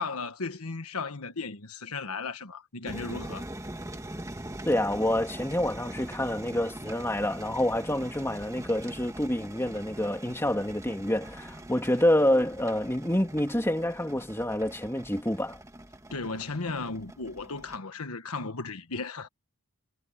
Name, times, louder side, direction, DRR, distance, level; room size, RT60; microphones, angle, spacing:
voice 1, 0.0-3.5 16.1-19.3, left 4 dB, 70° left, 1.4 m, -35 dB
sound 1, 2.9-17.8, right 1 dB, 15° right, 1.9 m, -42 dB
voice 2, 4.7-15.6, left 1 dB, 10° left, 2.8 m, -27 dB
head